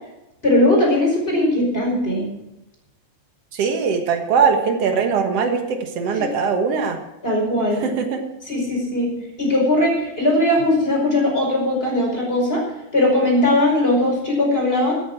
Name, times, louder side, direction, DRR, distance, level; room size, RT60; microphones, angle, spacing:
voice 1, 0.4-2.3 6.1-6.3 7.2-7.8 8.4-9.1 9.4-12.6 12.9-14.9, left 1 dB, 15° left, -1 dB, 5.2 m, -19 dB
voice 2, 3.5-7.0 7.8-8.3, right 5 dB, 65° right, 4 dB, 1.5 m, -21 dB
14.0 x 10.0 x 6.1 m, 0.91 s
omnidirectional pair, 4.8 m